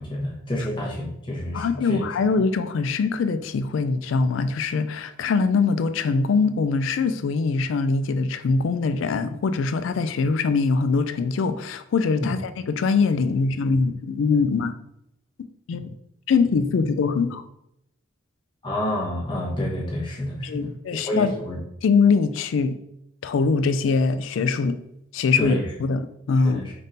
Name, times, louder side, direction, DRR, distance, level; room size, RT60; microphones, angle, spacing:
voice 1, 0.0-2.0 12.2-12.4 15.7-15.8 18.6-21.6 25.4-25.7 26.4-26.7, left 1 dB, 25° left, -3 dB, 0.9 m, -28 dB
voice 2, 1.5-14.8 15.7-15.9 16.3-17.4 20.4-21.3 21.8-22.8 23.2-24.8 25.1-26.7, left 4 dB, 65° left, 10 dB, 0.3 m, -23 dB
4.0 x 3.6 x 2.6 m, 0.78 s
head